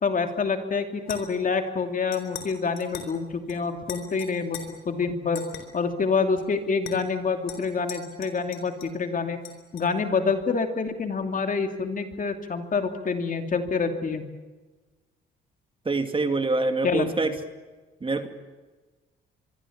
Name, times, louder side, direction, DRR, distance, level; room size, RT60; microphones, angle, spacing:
voice 1, 0.0-5.4 5.7-9.4 9.7-14.2 16.8-17.1, left 5 dB, 40° left, 6 dB, 2.7 m, -27 dB
sound 1, 1.0-1.5 2.1-2.5 2.8-3.1 3.5-3.6 3.9-4.6 5.3-5.6 6.4-6.5 6.8-7.0 7.5-9.0 9.4-9.9, left 9 dB, 80° left, 4.5 m, -40 dB
voice 2, 15.8-17.4 18.0-18.3, right 3 dB, 25° right, 7 dB, 2.4 m, -25 dB
24.5 x 23.5 x 7.3 m, 1.3 s
cardioid pair, 90°, 20 cm